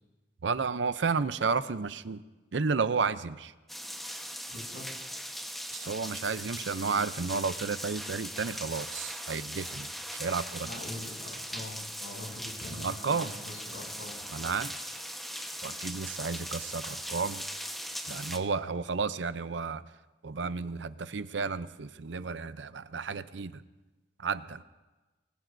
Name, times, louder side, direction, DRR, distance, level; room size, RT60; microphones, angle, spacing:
voice 1, 0.4-2.2 2.5-3.5 5.7-10.7 12.7-13.3 14.3-14.7 15.6-17.4 18.1-19.8 20.2-23.6 24.2-24.6, right 5 dB, 85° right, 0.6 m, -32 dB
sound 1, 3.7-18.4, equal, ahead, 1.2 m, -40 dB
voice 2, 4.5-4.9 10.6-14.2, left 1 dB, 75° left, 7.3 m, -43 dB
25.0 x 20.5 x 2.7 m
head